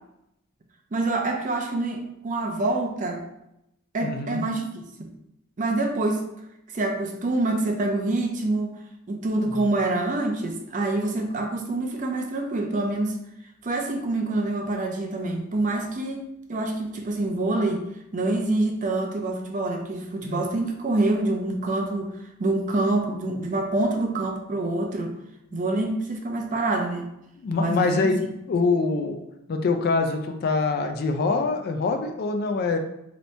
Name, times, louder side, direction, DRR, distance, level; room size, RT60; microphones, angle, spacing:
voice 1, 0.9-3.2 3.9-5.1 5.6-6.3 6.7-8.8 9.1-13.2 13.6-17.8 18.1-25.2 25.5-27.1 27.6-28.1, right 2 dB, 35° right, 2 dB, 0.4 m, -26 dB
voice 2, 4.0-4.4 9.6-9.7 20.2-20.4 27.4-28.2 28.5-29.2 29.5-32.8, left 4 dB, 45° left, 6 dB, 0.3 m, -24 dB
2.9 x 2.6 x 3.2 m, 0.82 s
head